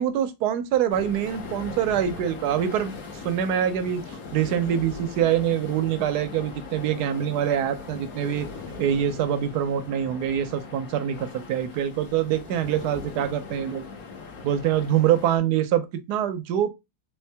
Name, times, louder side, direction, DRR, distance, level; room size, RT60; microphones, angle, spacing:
voice 1, 0.0-2.9 3.2-4.0 4.3-8.5 8.8-13.8 14.4-16.7, right 10 dB, 75° right, 1.0 m, -24 dB
sound 1, 0.9-15.4, left 4 dB, 55° left, 1.2 m, -40 dB
3.6 x 3.1 x 3.2 m
omnidirectional pair, 2.2 m